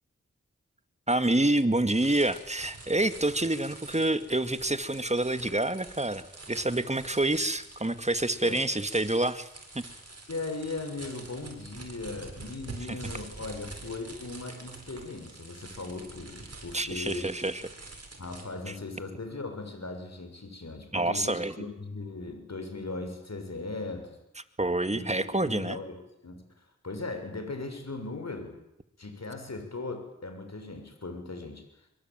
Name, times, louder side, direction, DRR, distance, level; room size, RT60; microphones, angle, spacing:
voice 1, 1.1-9.5 9.7-9.8 12.9-13.0 16.7-17.6 18.7-18.8 20.9-21.5 24.6-25.8, right 2 dB, 25° right, 11 dB, 2.1 m, -27 dB
sound 1, 1.9-18.4, right 2 dB, 60° right, 7.3 m, -46 dB
voice 2, 10.3-17.3 18.2-24.2 24.9-28.6 29.0-31.6, left 3 dB, 65° left, 6 dB, 6.7 m, -38 dB
26.0 x 24.5 x 9.2 m, 0.84 s
wide cardioid pair, 50°, 29 cm